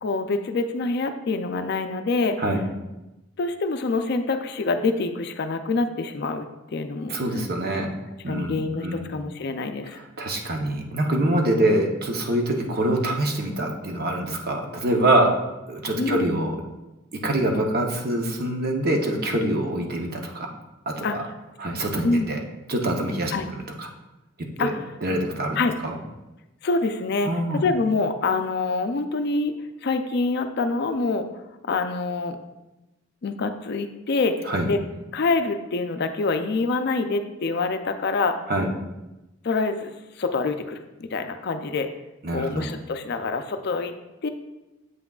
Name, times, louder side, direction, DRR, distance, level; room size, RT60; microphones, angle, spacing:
voice 1, 0.0-2.4 3.4-7.2 8.3-10.0 11.6-11.8 16.0-16.3 21.0-21.1 22.0-22.3 23.3-23.5 24.6-24.8 25.6-25.7 26.6-29.5 29.8-31.3 31.6-32.4 33.2-34.8 35.1-38.4 39.4-41.9 42.3-43.9 44.2-44.3, left 3 dB, 50° left, 8 dB, 0.4 m, -26 dB
voice 2, 7.1-7.9 8.2-9.1 10.2-15.3 15.7-16.6 17.1-20.5 20.9-21.2 21.6-22.4 22.7-23.3 23.8-23.9 24.4-24.7 25.0-25.6 25.8-26.0 27.2-27.6 34.5-34.7 38.5-38.7 42.2-42.7, right 1 dB, 45° right, 2 dB, 0.8 m, -25 dB
7.7 x 5.9 x 2.3 m, 1.0 s
head